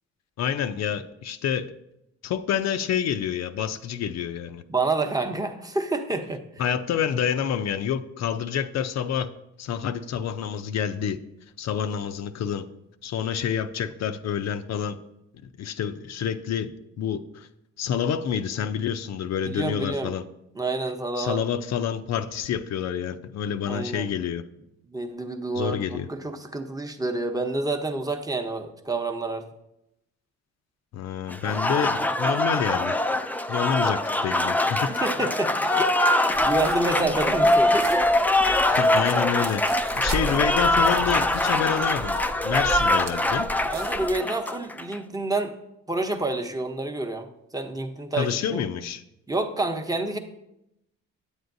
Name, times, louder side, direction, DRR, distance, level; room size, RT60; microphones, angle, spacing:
voice 1, 0.4-1.7 2.2-4.6 6.6-9.3 9.6-11.2 11.6-12.7 13.0-15.0 15.6-16.7 17.0-17.5 17.8-20.2 21.2-24.4 25.6-26.1 30.9-33.0 33.5-34.9 38.7-42.2 42.4-43.5 48.2-49.0, left 8 dB, 60° left, 10 dB, 0.5 m, -28 dB
voice 2, 4.7-6.4 19.4-20.1 20.5-21.4 23.7-24.1 24.9-29.4 34.9-35.9 36.2-38.0 43.7-45.5 45.9-48.6 49.3-50.2, right 2 dB, 10° right, 5 dB, 0.8 m, -28 dB
Applause, 31.3-45.0, left 1 dB, 5° left, 0.3 m, -23 dB
sound 1, 36.3-44.1, right 3 dB, 60° right, 0.9 m, -37 dB
8.7 x 7.9 x 2.6 m, 0.84 s
cardioid pair, 90°, 30 cm